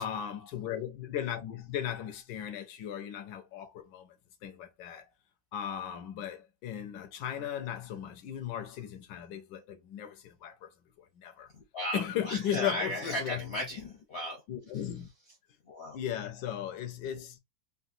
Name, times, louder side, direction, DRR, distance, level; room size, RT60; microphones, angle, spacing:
voice 1, 0.0-4.2 4.4-5.1 5.5-10.7 11.0-11.5 11.9-13.6 14.5-15.1 15.9-17.4, left 9 dB, 75° left, 1.2 m, -36 dB
voice 2, 11.5-14.4 15.6-16.0, equal, 55° left, 0.7 m, -36 dB
3.8 x 2.2 x 2.5 m
omnidirectional pair, 2.0 m